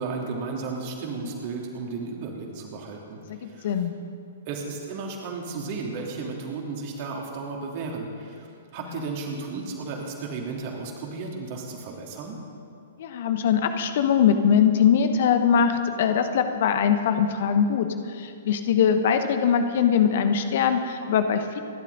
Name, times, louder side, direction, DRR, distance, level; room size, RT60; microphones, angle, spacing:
voice 1, 0.0-3.7 4.5-8.5 8.7-12.4, right 4 dB, 40° right, -1 dB, 3.2 m, -34 dB
voice 2, 3.4-3.9 13.0-17.9 18.2-21.6, left 7 dB, 50° left, 8 dB, 1.2 m, -22 dB
28.5 x 12.0 x 4.1 m, 2.4 s
figure-of-eight pair, 110°, 0 cm